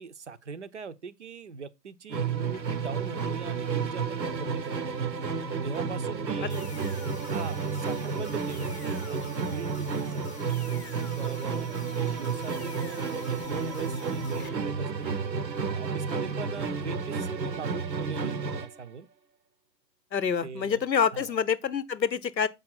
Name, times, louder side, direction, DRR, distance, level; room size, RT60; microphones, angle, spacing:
voice 1, 0.0-5.0 5.6-6.9 7.2-10.6 11.2-15.1 15.7-19.1 20.4-20.8 21.1-21.3, right 5 dB, 45° right, 0.5 m, -41 dB
Musical instrument, 2.1-18.8, right 5 dB, 90° right, 0.8 m, -31 dB
sound 1, 6.5-14.5, left 7 dB, 40° left, 0.7 m, -48 dB
sound 2, 13.4-15.2, left 1 dB, ahead, 0.8 m, -59 dB
voice 2, 20.1-22.5, left 7 dB, 85° left, 0.8 m, -27 dB
6.8 x 4.9 x 4.3 m
figure-of-eight pair, 135°, 50 cm